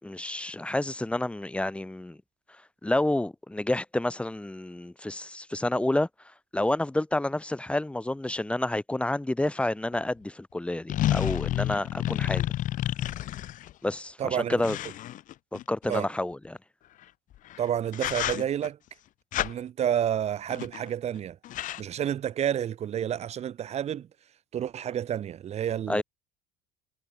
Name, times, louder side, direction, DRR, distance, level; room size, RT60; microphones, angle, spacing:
voice 1, 0.0-2.2 2.8-6.1 6.5-12.4 13.8-14.8 15.5-16.6 25.9-26.0, left 1 dB, 5° left, 4.7 m, -29 dB
sound 1, 9.9-10.0 10.9-13.7 14.6-16.0 17.4-17.6 17.9-18.7 19.3-19.5 20.5-20.9 21.1-21.2 21.4-21.8, left 13 dB, 50° left, 3.0 m, -30 dB
voice 2, 14.2-14.6 15.9-16.1 17.6-18.8 19.4-21.4 21.8-24.1 24.5-26.0, right 10 dB, 40° right, 3.5 m, -29 dB
supercardioid pair, 120°, 17 cm